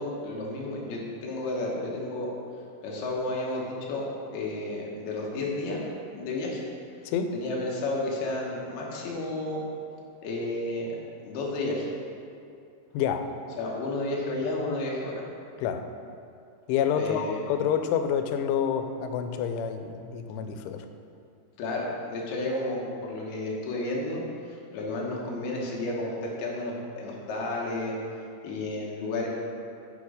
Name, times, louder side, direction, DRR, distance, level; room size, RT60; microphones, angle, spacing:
voice 1, 0.0-2.3 2.8-5.8 6.1-6.7 7.3-9.6 10.2-11.0 11.2-11.9 13.6-15.2 17.0-17.4 21.6-27.9 28.4-29.3, left 2 dB, 65° left, -3 dB, 2.8 m, -32 dB
voice 2, 7.1-7.4 12.9-13.3 15.6-15.9 16.7-20.9, left 8 dB, 90° left, 7 dB, 3.1 m, -28 dB
8.4 x 6.5 x 5.0 m, 2.5 s
omnidirectional pair, 5.4 m